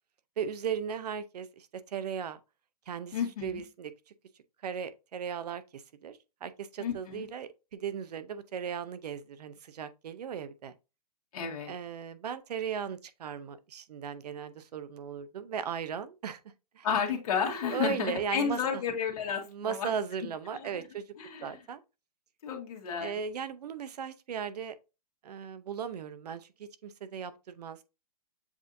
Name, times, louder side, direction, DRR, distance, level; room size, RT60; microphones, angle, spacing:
voice 1, 0.4-2.4 2.9-3.2 3.4-3.9 4.6-10.7 11.7-16.4 16.7-16.9 17.7-18.8 19.5-21.0 21.4-21.8 23.0-24.7 25.2-27.8, right 7 dB, 85° right, 0.6 m, -37 dB
voice 2, 3.1-3.6 6.8-7.3 11.3-11.7 16.8-19.9 20.5-20.9 21.2-21.6 22.4-23.2, left 7 dB, 65° left, 1.4 m, -32 dB
7.2 x 2.6 x 2.6 m
hypercardioid pair, 145°, 20 cm